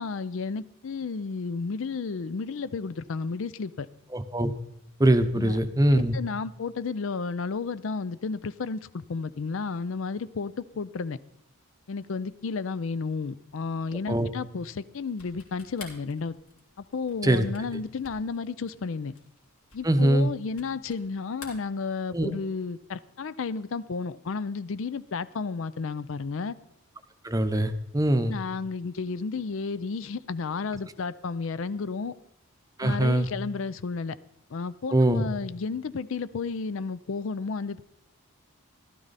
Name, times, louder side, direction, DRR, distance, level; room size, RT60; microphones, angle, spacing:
voice 1, 0.0-3.9 5.4-5.6 5.9-11.2 11.9-16.4 16.8-19.1 19.7-26.6 28.3-32.1 32.8-34.2 34.5-37.8, left 4 dB, 65° left, 16 dB, 0.4 m, -32 dB
voice 2, 4.1-4.5 5.0-6.1 14.1-14.3 17.2-17.4 19.8-20.3 22.1-22.3 27.2-28.4 32.8-33.3 34.9-35.3, right 1 dB, 15° right, 9 dB, 0.7 m, -22 dB
sound 1, 15.1-21.1 21.3-22.4, left 5 dB, 85° left, 3.4 m, -49 dB
15.5 x 13.0 x 4.1 m, 0.76 s
head